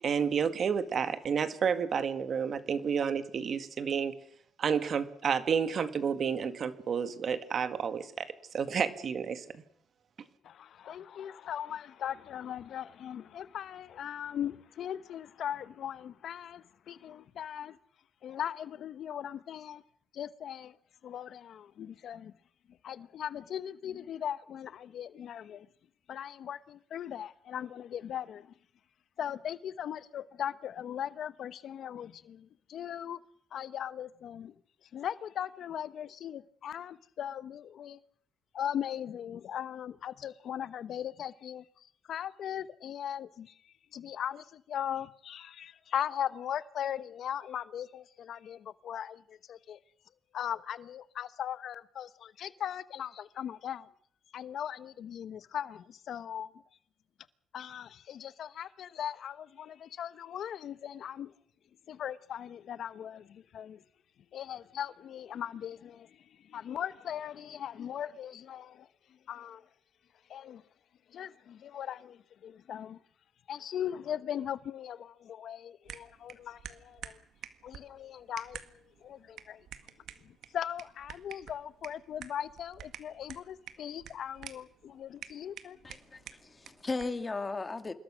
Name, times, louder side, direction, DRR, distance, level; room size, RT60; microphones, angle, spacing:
voice 1, 0.0-4.2 4.6-9.6, right 6 dB, 55° right, 2.0 m, -30 dB
voice 2, 10.4-17.8 18.2-19.8 20.1-20.8 21.0-22.3 22.8-25.7 26.1-28.5 29.2-33.2 33.5-34.5 34.8-38.0 38.5-49.8 50.3-53.9 54.3-56.5 57.5-61.3 61.9-63.8 64.3-69.7 70.3-70.6 71.1-73.0 73.5-77.2 77.6-79.7 80.2-85.8, left 9 dB, 65° left, 0.9 m, -39 dB
sound 1, 75.9-87.2, right 10 dB, 75° right, 1.7 m, -49 dB
voice 3, 85.8-87.9, left 3 dB, 25° left, 2.4 m, -36 dB
27.0 x 21.0 x 6.3 m
cardioid pair, 90°, 0 cm